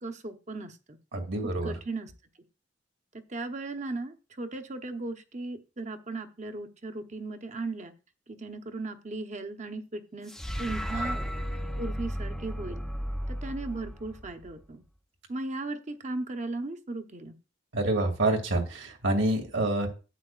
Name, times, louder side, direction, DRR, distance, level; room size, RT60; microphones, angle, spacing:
voice 1, 0.0-1.0 1.6-2.1 3.3-7.9 8.3-10.3 10.6-11.2 11.8-12.8 13.3-14.8 15.3-17.3, right 2 dB, 40° right, 7 dB, 0.9 m, -37 dB
voice 2, 1.1-1.7 17.7-19.9, right 2 dB, 85° right, 3 dB, 2.3 m, -27 dB
sound 1, 10.3-14.6, equal, ahead, 0.6 m, -34 dB
11.5 x 8.7 x 2.5 m, 0.31 s
head